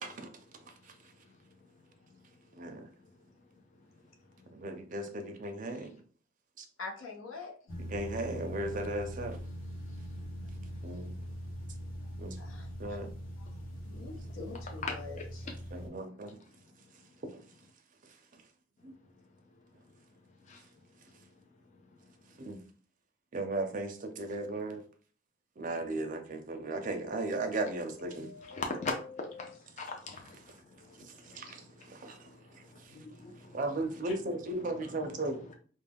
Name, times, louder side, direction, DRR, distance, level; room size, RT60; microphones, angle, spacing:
voice 1, 4.5-5.9 6.6-6.7 7.9-9.4 10.8-11.1 12.2-12.3 12.8-13.1 15.7-16.4 18.8-18.9 22.4-22.6 23.3-24.8 25.6-28.3 31.4-31.6 31.9-32.2 33.5-35.6, right 2 dB, 40° right, 0.4 m, -36 dB
voice 2, 6.8-7.6 12.4-13.0 13.4-13.5 13.9-15.5 28.0-29.6 34.1-34.2, left 4 dB, 85° left, 0.6 m, -46 dB
sound 1, 7.7-15.9, equal, 65° left, 1.0 m, -42 dB
voice 3, 28.4-28.9 29.4-29.5 29.8-30.5 30.8-31.5 31.9-32.0 32.7-33.6 34.6-35.4, left 4 dB, 35° left, 0.4 m, -40 dB
2.3 x 2.1 x 3.4 m
head